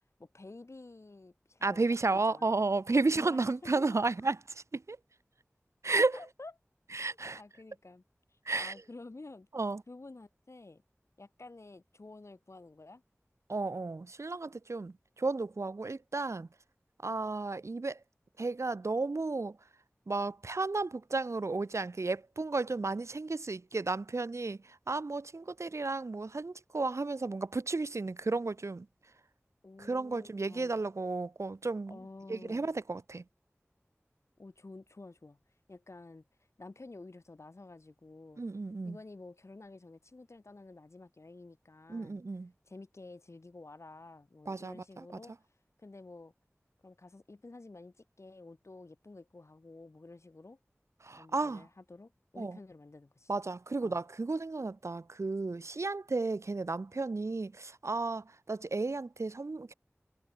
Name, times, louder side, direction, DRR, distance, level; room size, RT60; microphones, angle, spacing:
voice 1, 0.2-2.5 3.2-3.9 6.1-6.5 7.4-8.0 8.5-9.5 9.9-10.8 11.2-13.0 29.6-30.7 31.9-32.7 34.4-35.4 35.7-36.2 36.6-38.4 38.8-42.2 42.6-45.3 45.8-46.3 46.8-50.6 51.1-53.3 53.8-54.0, left 2 dB, 75° left, 6.5 m, -51 dB
voice 2, 1.6-5.0 5.8-6.2 6.9-7.4 8.5-8.7 9.5-9.8 13.5-16.5 17.0-18.0 18.4-19.6 20.1-28.9 29.8-32.0 32.3-33.2 38.4-39.0 41.9-42.5 44.5-45.0 51.0-51.6 52.4-52.6 53.3-59.7, right 3 dB, 85° right, 1.3 m, -33 dB
wide cardioid pair, 55°, 5 cm